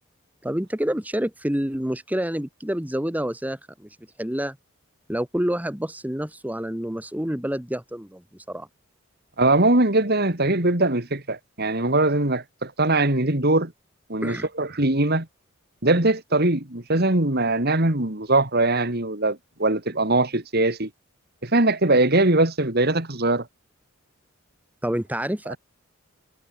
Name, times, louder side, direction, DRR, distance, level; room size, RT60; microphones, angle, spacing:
voice 1, 0.4-4.6 5.1-8.7 14.2-14.5 24.8-25.5, equal, 5° right, 1.3 m, -28 dB
voice 2, 9.4-13.7 14.1-15.3 15.8-20.9 21.4-23.5 25.5-25.6, right 2 dB, 50° right, 2.9 m, -21 dB
head